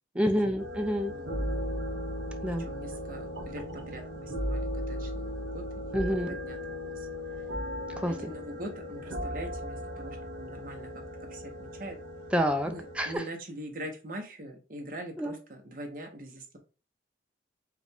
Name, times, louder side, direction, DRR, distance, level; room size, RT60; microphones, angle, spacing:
voice 1, 0.2-1.1 2.4-2.7 5.9-6.4 8.0-8.3 12.3-13.2 15.2-15.3, equal, 5° right, 5 dB, 0.4 m, -28 dB
sound 1, 0.6-13.2, equal, 90° right, 1.2 m, -37 dB
voice 2, 1.1-1.6 2.5-7.1 8.0-10.9 11.3-12.0 12.6-16.6, right 1 dB, 50° right, 3 dB, 0.8 m, -43 dB
4.8 x 2.3 x 3.4 m, 0.33 s
head